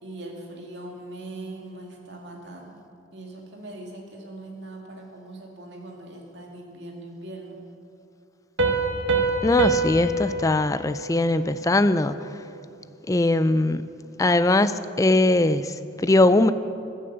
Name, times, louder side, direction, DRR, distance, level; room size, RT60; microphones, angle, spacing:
voice 1, 0.0-7.6, right 2 dB, 60° right, 0 dB, 2.4 m, -41 dB
Piano, 8.6-12.0, right 3 dB, 75° right, 1.4 m, -26 dB
voice 2, 9.4-12.2 13.1-13.8 14.2-16.5, left 2 dB, 15° left, 13 dB, 0.4 m, -20 dB
15.5 x 12.0 x 6.9 m, 2.7 s
head